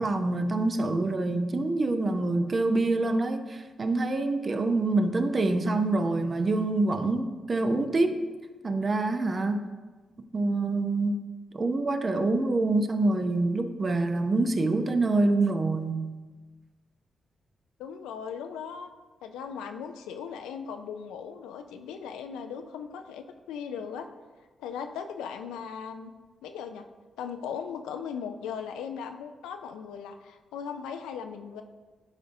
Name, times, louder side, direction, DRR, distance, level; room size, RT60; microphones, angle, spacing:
voice 1, 0.0-8.2 8.6-9.6 10.3-11.2 11.5-16.1, right 2 dB, 45° right, 8 dB, 0.6 m, -26 dB
voice 2, 17.8-18.9 19.2-24.1 24.6-26.1 26.4-26.9 27.2-31.6, left 7 dB, 90° left, 7 dB, 0.4 m, -38 dB
10.5 x 3.9 x 2.6 m, 1.3 s
supercardioid pair, 45°, 0 cm